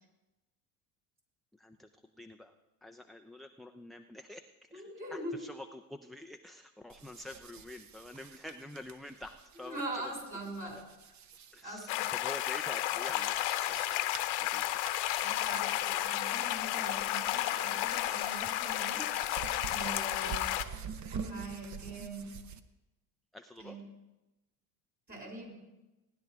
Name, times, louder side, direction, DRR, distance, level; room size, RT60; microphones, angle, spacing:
voice 1, 1.6-2.5 2.8-4.8 5.1-10.1 11.5-14.1 14.4-14.6 23.3-23.8, left 1 dB, ahead, 5 dB, 0.3 m, -47 dB
voice 2, 4.7-5.4 9.6-10.8 11.6-12.1 15.2-19.0 19.7-20.6 21.1-22.3 23.6-23.9 25.1-25.5, right 1 dB, 20° right, -1 dB, 5.6 m, -42 dB
sound 1, 6.9-22.6, right 7 dB, 40° right, 0.9 m, -47 dB
sound 2, 11.9-20.6, left 15 dB, 65° left, 0.9 m, -32 dB
18.0 x 10.5 x 3.5 m, 1.0 s
supercardioid pair, 100°, 42 cm